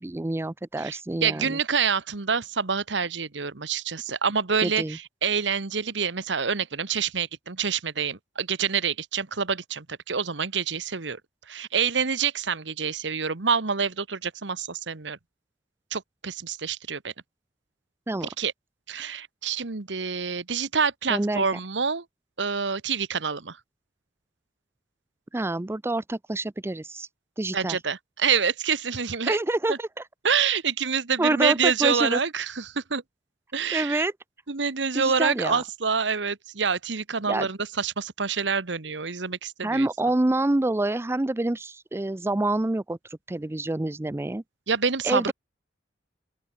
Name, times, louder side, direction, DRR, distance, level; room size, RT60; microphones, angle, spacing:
voice 1, 0.0-1.6 4.6-5.0 18.1-18.3 21.1-21.4 25.3-27.1 27.4-27.8 29.2-29.9 31.2-32.2 33.7-34.1 34.9-35.6 37.3-37.5 39.6-43.0 43.3-44.4 45.0-45.3, right 2 dB, 15° right, 0.4 m, -27 dB
voice 2, 0.8-11.2 11.5-15.2 15.9-17.1 18.4-18.5 18.9-22.0 22.4-23.6 27.5-29.4 29.7-29.8 30.2-33.0 33.5-34.1 34.5-39.9 44.7-45.3, right 6 dB, 75° right, 1.3 m, -27 dB
open air
head